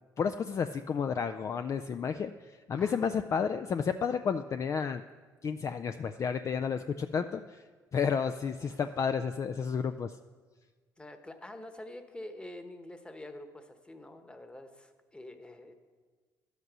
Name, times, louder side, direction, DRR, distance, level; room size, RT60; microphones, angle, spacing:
voice 1, 0.2-2.3 2.7-5.0 5.4-7.4 7.9-10.1, left 6 dB, 40° left, 9 dB, 0.4 m, -31 dB
voice 2, 2.7-3.2 8.6-8.9 11.0-15.7, left 1 dB, 15° left, 7 dB, 1.2 m, -47 dB
11.0 x 8.1 x 6.2 m, 1.4 s
supercardioid pair, 80°, 8 cm